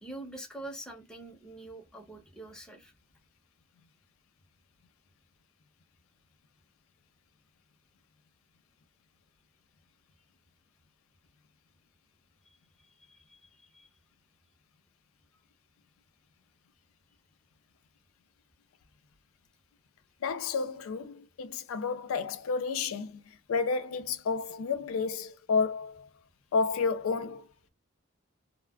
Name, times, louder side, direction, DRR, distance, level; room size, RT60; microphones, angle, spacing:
voice 1, 0.0-2.9 13.0-13.9, right 1 dB, 5° left, 0.6 m, -45 dB
voice 2, 20.2-26.1 26.5-27.7, left 5 dB, 80° left, 0.4 m, -31 dB
2.3 x 2.1 x 3.3 m
head